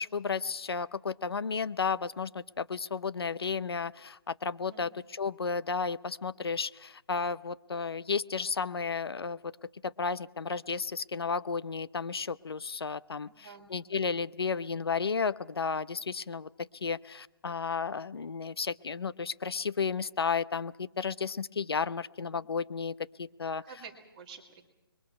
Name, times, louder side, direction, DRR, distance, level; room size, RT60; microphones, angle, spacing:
voice 1, 0.0-9.5 9.8-23.6, left 5 dB, 75° left, 17 dB, 0.7 m, -33 dB
voice 2, 13.2-13.7 22.2-22.3 23.6-24.6, right 6 dB, 15° right, 0 dB, 2.2 m, -49 dB
27.0 x 22.0 x 5.8 m, 0.93 s
hypercardioid pair, 175°, 13 cm